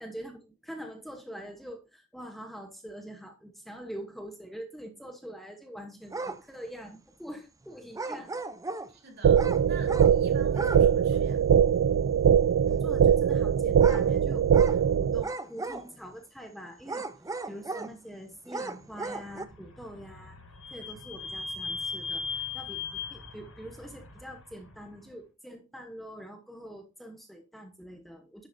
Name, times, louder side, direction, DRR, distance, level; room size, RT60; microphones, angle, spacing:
voice 1, 0.0-8.3 12.7-17.1 17.5-20.4 20.7-28.5, equal, ahead, 1.0 m, -44 dB
sound 1, 6.1-6.4 7.9-8.9 9.3-10.2 10.5-10.9 11.1-11.2 13.8-14.1 14.5-14.8 15.2-16.1 16.8-17.9 18.5-19.4, right 3 dB, 15° right, 0.6 m, -36 dB
voice 2, 8.9-11.5, right 4 dB, 50° right, 3.7 m, -49 dB
sound 2, 9.2-15.2, right 8 dB, 85° right, 0.3 m, -22 dB
Vehicle / Squeak, 19.2-24.8, left 5 dB, 80° left, 5.5 m, -39 dB
11.0 x 7.7 x 2.7 m
head